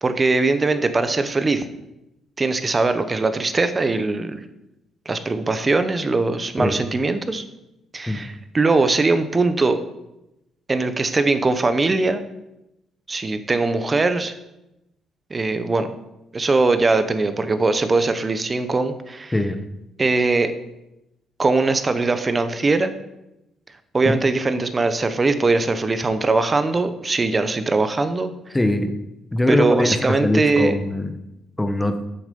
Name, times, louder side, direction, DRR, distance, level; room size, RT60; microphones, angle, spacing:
voice 1, 0.0-1.6 2.4-4.5 5.1-7.4 7.9-9.8 10.7-12.2 13.1-14.3 15.3-15.9 16.3-19.3 20.0-20.5 21.4-22.9 23.9-28.6 29.5-30.8, right 3 dB, 30° right, 10 dB, 0.9 m, -21 dB
voice 2, 28.5-28.9 29.3-31.1 31.6-31.9, left 1 dB, 10° left, 8 dB, 1.0 m, -21 dB
8.2 x 7.2 x 5.3 m, 0.91 s
cardioid pair, 90°, 0 cm